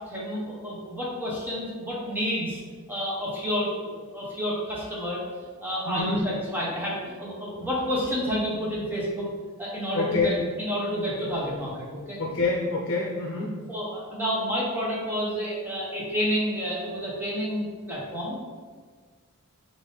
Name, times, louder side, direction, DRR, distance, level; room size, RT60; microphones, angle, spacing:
voice 1, 0.1-2.6 2.9-5.2 5.6-9.3 9.6-12.2 13.7-18.4, equal, 10° right, -6 dB, 1.0 m, -30 dB
voice 2, 5.9-6.2 9.9-10.4 12.2-13.5, left 3 dB, 60° left, -2 dB, 0.7 m, -26 dB
5.9 x 2.6 x 3.3 m, 1.5 s
head